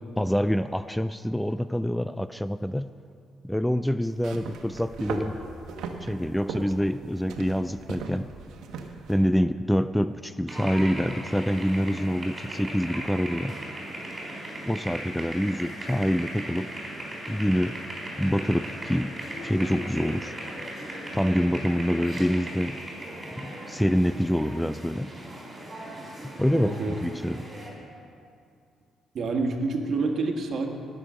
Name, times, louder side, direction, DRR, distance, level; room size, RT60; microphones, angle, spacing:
voice 1, 0.2-2.9 3.4-5.4 6.0-8.3 9.1-13.5 14.7-16.7 17.3-17.8 18.2-19.2 19.4-20.3 21.1-22.8 23.4-25.1 26.2-27.5, equal, 5° left, 12 dB, 0.3 m, -26 dB
sound 1, 4.1-9.2, right 4 dB, 80° right, 1.1 m, -37 dB
sound 2, 10.5-27.7, right 1 dB, 25° right, 4.3 m, -38 dB
voice 2, 26.5-27.0 29.1-30.7, right 3 dB, 55° right, 3 dB, 1.6 m, -27 dB
19.0 x 6.9 x 6.4 m, 2.4 s
cardioid pair, 90°, 0 cm